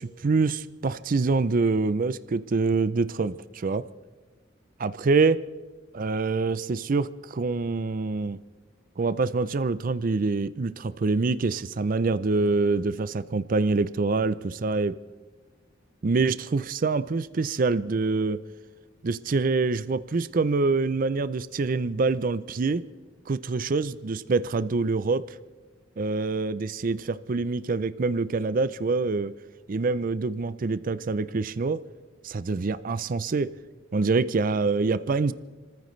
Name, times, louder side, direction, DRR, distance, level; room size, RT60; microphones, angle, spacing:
voice 1, 0.0-3.9 4.8-5.4 5.9-8.4 9.0-15.0 16.0-18.4 19.0-22.8 23.3-25.3 26.0-29.3 29.7-31.8 32.2-33.5 33.9-35.3, right 3 dB, 45° right, 15 dB, 0.4 m, -25 dB
30.0 x 14.5 x 3.2 m, 1.3 s
head